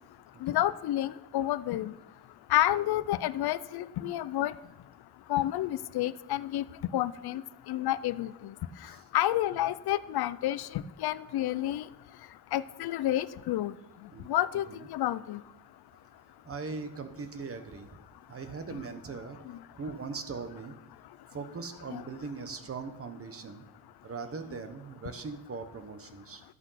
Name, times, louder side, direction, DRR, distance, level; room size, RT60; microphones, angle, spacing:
voice 1, 0.4-1.9 2.5-4.5 5.3-6.6 6.9-7.4 7.7-8.5 9.1-11.8 12.5-13.7 14.3-15.4 18.7-18.8 21.9-22.0, left 13 dB, 85° left, 17 dB, 0.6 m, -29 dB
voice 2, 16.4-17.9 18.3-20.7 21.3-23.6 24.0-26.4, right 4 dB, 40° right, 8 dB, 1.1 m, -40 dB
12.5 x 8.2 x 5.7 m, 0.95 s
wide cardioid pair, 150°, 37 cm